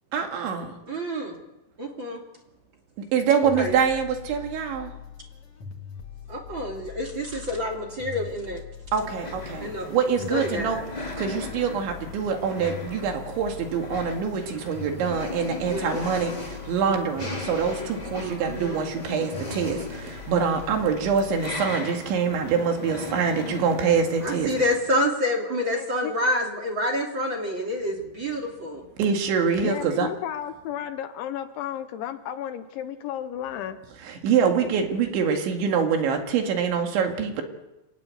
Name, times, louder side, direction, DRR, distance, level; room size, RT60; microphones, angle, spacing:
voice 1, 0.1-0.7 3.1-4.9 8.9-10.8 11.2-16.3 16.7-24.5 29.0-30.1 34.0-37.4, right 6 dB, 65° right, 4 dB, 4.2 m, -25 dB
voice 2, 0.9-1.4 1.8-2.2 3.5-3.7 6.3-8.6 9.6-9.9 10.3-10.8 15.7-16.0 18.2-18.8 24.2-28.9, left 1 dB, 30° right, 3 dB, 2.4 m, -28 dB
sound 1, 3.4-21.7, left 8 dB, 45° left, 2.7 m, -42 dB
sound 2, 9.0-24.8, left 1 dB, 10° left, 2.3 m, -38 dB
voice 3, 25.7-26.1 29.6-33.8, left 10 dB, 75° left, 9 dB, 3.2 m, -33 dB
26.5 x 16.0 x 9.6 m, 0.99 s
omnidirectional pair, 5.9 m